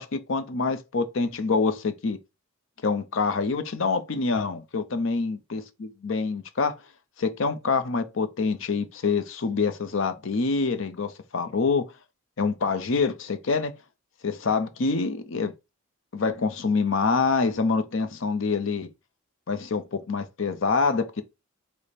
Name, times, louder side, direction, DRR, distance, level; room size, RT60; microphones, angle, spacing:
voice 1, 0.0-2.2 2.8-6.8 7.2-11.8 12.4-13.7 14.2-15.5 16.1-18.9 19.5-21.2, left 4 dB, 60° left, 0.6 m, -26 dB
4.9 x 2.1 x 4.2 m
head